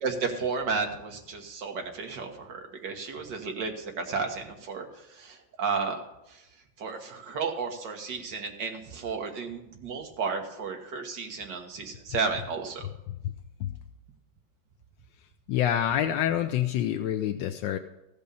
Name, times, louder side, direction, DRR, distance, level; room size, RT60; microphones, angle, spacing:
voice 1, 0.0-4.9 5.1-6.0 6.8-12.9, right 5 dB, 70° right, 3 dB, 2.0 m, -33 dB
voice 2, 15.5-17.8, left 10 dB, 80° left, 8 dB, 1.3 m, -27 dB
15.0 x 5.3 x 6.9 m, 0.89 s
omnidirectional pair, 2.0 m